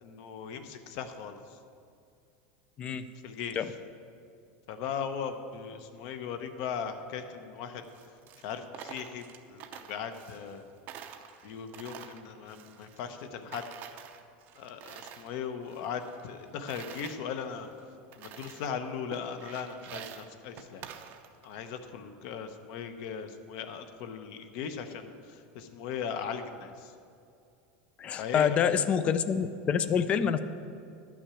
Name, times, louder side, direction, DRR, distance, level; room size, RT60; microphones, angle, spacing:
voice 1, 0.0-1.6 3.2-3.7 4.7-7.8 8.4-10.6 11.4-13.7 14.6-17.7 18.2-20.8 21.4-26.9 28.2-28.6, left 7 dB, 50° left, 8 dB, 0.8 m, -38 dB
Coin (dropping), 7.8-10.6 10.9-13.3 13.5-15.3 15.6-17.2 17.7-17.8 18.1-18.8 19.1-21.5, right 9 dB, 35° right, 0.6 m, -47 dB
voice 2, 28.0-30.4, left 7 dB, 20° left, 12 dB, 0.4 m, -27 dB
11.5 x 6.1 x 8.3 m, 2.5 s
supercardioid pair, 175°, 5 cm